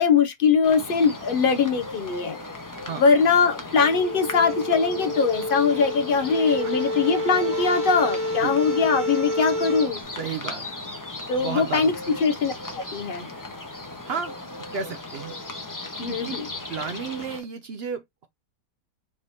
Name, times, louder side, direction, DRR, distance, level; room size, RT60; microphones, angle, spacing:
voice 1, 0.0-2.4 3.0-10.0 11.3-11.9 12.2-12.5 12.9-13.3 16.0-16.5, left 5 dB, 75° left, 0.5 m, -21 dB
sound 1, 0.6-17.4, left 2 dB, 20° left, 0.6 m, -37 dB
sound 2, 3.8-9.9, left 1 dB, 25° right, 0.7 m, -29 dB
voice 2, 10.1-10.6 11.4-12.2 14.0-14.4 14.7-15.4 16.1-16.4 16.7-18.3, right 6 dB, 65° right, 0.6 m, -33 dB
4.6 x 2.9 x 3.3 m
omnidirectional pair, 1.7 m